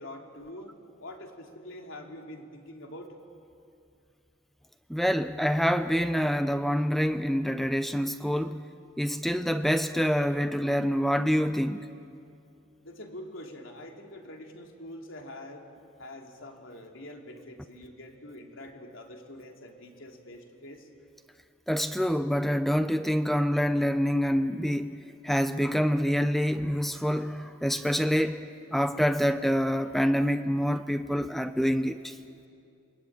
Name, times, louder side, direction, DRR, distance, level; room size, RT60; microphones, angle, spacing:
voice 1, 0.0-3.1 12.8-15.6 16.0-20.9, left 1 dB, 85° left, 2 dB, 3.3 m, -45 dB
voice 2, 4.9-8.6 9.0-11.8 21.7-25.0 25.2-32.1, equal, ahead, 9 dB, 0.7 m, -26 dB
28.5 x 21.5 x 8.8 m, 2.5 s
head